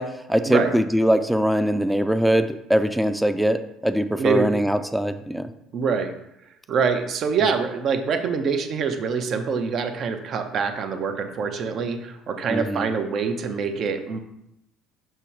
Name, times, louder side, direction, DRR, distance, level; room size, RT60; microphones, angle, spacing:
voice 1, 0.0-5.5 12.5-12.9, equal, 5° right, 10 dB, 0.5 m, -22 dB
voice 2, 4.2-4.5 5.7-6.1 6.7-14.2, right 5 dB, 45° right, 7 dB, 0.7 m, -25 dB
6.7 x 3.0 x 4.6 m, 0.83 s
figure-of-eight pair, 55°, 0 cm